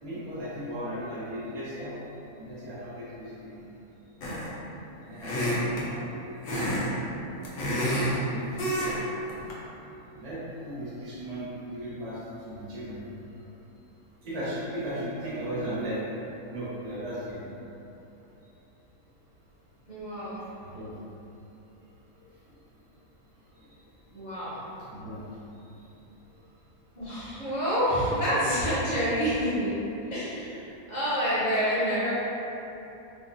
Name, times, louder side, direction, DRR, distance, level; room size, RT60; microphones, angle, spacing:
voice 1, 0.0-2.0 2.4-3.7 5.0-6.2 8.0-9.0 10.2-13.1 14.2-16.0 16.5-17.4 20.6-21.0 23.5-23.7 24.9-25.2 25.5-25.7, right 1 dB, 70° right, -9 dB, 0.3 m, -36 dB
sound 1, 4.2-4.6 5.2-5.9 6.4-6.9 7.2-8.2 8.6-9.0 9.3-9.5, equal, 70° left, 1.0 m, -28 dB
voice 2, 19.9-20.5 24.1-24.7 27.0-29.7 30.1-32.1, equal, 40° left, -10 dB, 0.7 m, -28 dB
3.4 x 2.1 x 2.4 m, 3.0 s
omnidirectional pair, 1.6 m